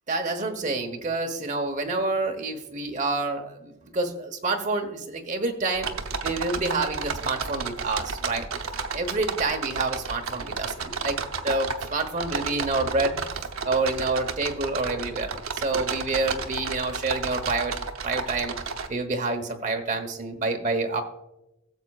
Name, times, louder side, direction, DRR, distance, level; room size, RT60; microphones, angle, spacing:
voice 1, 0.1-5.9 6.2-8.5 8.9-11.2 11.4-13.1 13.6-17.7 18.0-18.5 18.9-21.0, right 3 dB, 35° right, 4 dB, 1.1 m, -28 dB
sound 1, 5.7-18.9, right 4 dB, 75° right, 0.8 m, -32 dB
17.5 x 7.4 x 2.4 m, 0.93 s
head